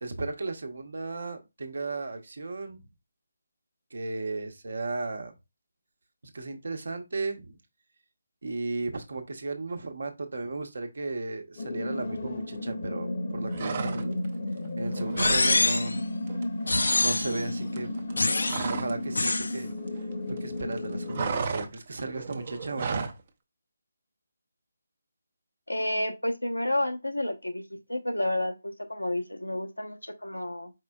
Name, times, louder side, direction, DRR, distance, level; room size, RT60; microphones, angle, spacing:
voice 1, 0.0-2.8 3.9-5.3 6.3-7.6 8.4-14.2 14.8-16.1 17.0-17.9 18.2-18.4 18.7-19.7 20.4-23.1, right 3 dB, 60° right, 0.9 m, -35 dB
sound 1, 11.6-21.3, left 1 dB, 45° left, 0.8 m, -33 dB
sound 2, 13.5-14.3 14.6-15.5 15.8-16.0 16.3-19.0 19.3-20.4 20.6-23.2, right 5 dB, 35° right, 0.6 m, -34 dB
sound 3, 15.2-16.0 16.7-17.4 18.2-18.7 19.1-19.5, left 2 dB, 70° left, 0.5 m, -25 dB
voice 2, 25.7-27.6 27.9-30.7, left 1 dB, 90° left, 0.8 m, -30 dB
4.7 x 4.1 x 2.3 m
figure-of-eight pair, 150°, 0 cm